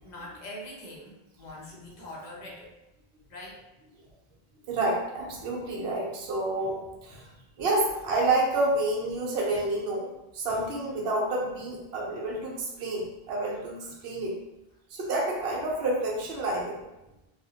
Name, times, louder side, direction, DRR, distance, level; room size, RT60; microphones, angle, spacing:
voice 1, 0.0-2.8 3.3-3.6 10.5-10.6, left 1 dB, 50° left, -3 dB, 0.6 m, -43 dB
voice 2, 4.7-7.3 7.6-14.4 14.9-16.8, right 2 dB, 65° right, -3 dB, 0.9 m, -29 dB
2.4 x 2.0 x 2.7 m, 0.95 s
omnidirectional pair, 1.1 m